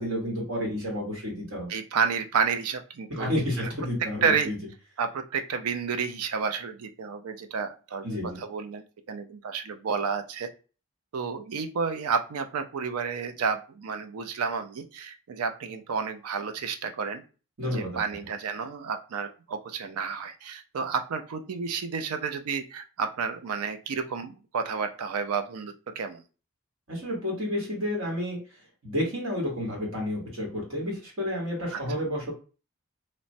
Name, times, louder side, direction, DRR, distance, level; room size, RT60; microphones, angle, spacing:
voice 1, 0.0-1.7 3.2-4.6 8.0-8.4 17.6-18.0 26.9-28.4 28.8-32.3, left 1 dB, 65° right, -2 dB, 1.0 m, -30 dB
voice 2, 1.7-3.7 4.2-4.5 5.0-10.5 11.1-17.2 17.6-26.2 31.7-31.8, right 5 dB, 85° right, 8 dB, 0.4 m, -31 dB
3.0 x 2.1 x 2.6 m, 0.35 s
head